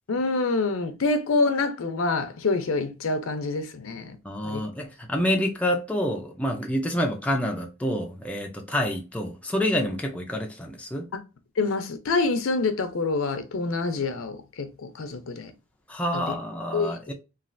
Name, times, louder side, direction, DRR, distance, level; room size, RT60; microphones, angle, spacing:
voice 1, 0.1-4.1 4.4-4.6 9.8-9.9 11.1-11.2 11.6-15.5 16.1-16.2 16.7-17.0, left 3 dB, 70° left, 0.5 m, -26 dB
voice 2, 4.2-11.1 15.9-17.1, equal, 5° left, 0.4 m, -28 dB
3.2 x 2.4 x 2.5 m
head